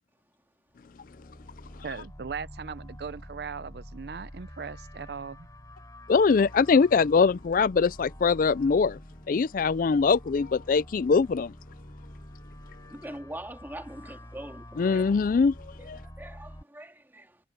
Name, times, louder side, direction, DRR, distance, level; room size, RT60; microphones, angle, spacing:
sound 1, 0.8-16.6, equal, 20° left, 6.7 m, -47 dB
voice 1, 1.8-5.5, right 5 dB, 65° right, 0.5 m, -38 dB
voice 2, 6.1-9.0 9.3-11.5 14.8-16.0, left 5 dB, 50° left, 0.4 m, -23 dB
voice 3, 12.9-15.0 15.8-17.5, right 1 dB, 10° right, 2.0 m, -43 dB
head